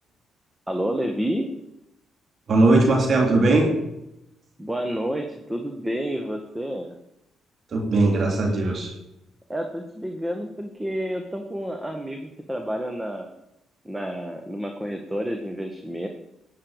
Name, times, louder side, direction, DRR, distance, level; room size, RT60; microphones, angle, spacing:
voice 1, 0.7-1.5 4.6-7.0 9.5-13.3 13.9-16.1, equal, 10° right, 4 dB, 1.9 m, -29 dB
voice 2, 2.5-3.7 7.7-8.9, right 2 dB, 50° right, 1 dB, 3.1 m, -19 dB
15.0 x 10.0 x 5.1 m, 0.87 s
supercardioid pair, 60°, 0 cm